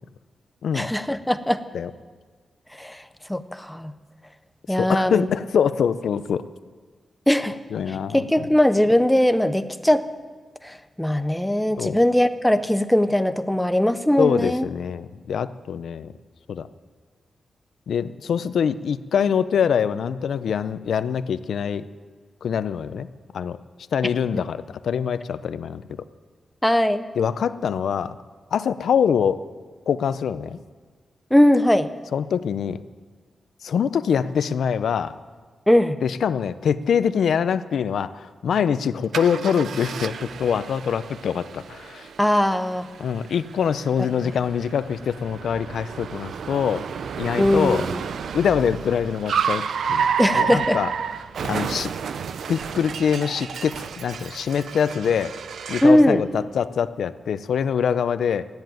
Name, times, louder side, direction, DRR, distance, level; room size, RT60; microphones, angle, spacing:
voice 1, 0.7-1.6 2.7-3.0 3.3-3.9 4.7-5.3 7.3-7.6 7.9-10.0 10.6-14.7 26.6-27.1 31.3-31.9 35.7-36.0 42.2-42.9 47.4-48.0 50.2-50.8 55.8-56.2, left 1 dB, 5° left, 11 dB, 0.6 m, -20 dB
voice 2, 4.7-6.5 7.7-8.5 11.8-12.0 14.2-16.1 16.5-16.7 17.9-21.9 22.4-23.1 23.3-23.6 23.9-25.8 27.2-28.2 28.5-29.4 29.9-30.6 32.1-32.8 33.6-35.2 36.0-42.1 43.0-46.9 47.2-47.8 48.3-50.1 50.3-50.9 51.4-51.9 52.5-55.3 55.7-58.5, left 7 dB, 75° left, 13 dB, 0.6 m, -24 dB
Car, 39.1-56.0, right 7 dB, 70° right, 0.5 m, -31 dB
13.5 x 10.5 x 9.1 m, 1.5 s
wide cardioid pair, 170°, 0 cm